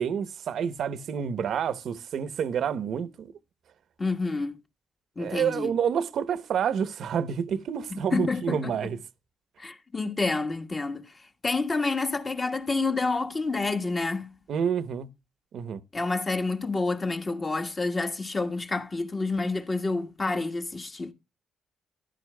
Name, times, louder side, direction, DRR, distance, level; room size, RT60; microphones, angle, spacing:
voice 1, 0.0-3.3 5.2-9.0 14.5-15.1 15.5-15.8, right 7 dB, 65° right, 0.9 m, -28 dB
voice 2, 4.0-4.6 5.2-5.8 7.9-8.7 9.6-14.4 15.9-21.1, left 3 dB, 30° left, 1.4 m, -29 dB
14.0 x 11.0 x 2.2 m
cardioid pair, 90°, 0 cm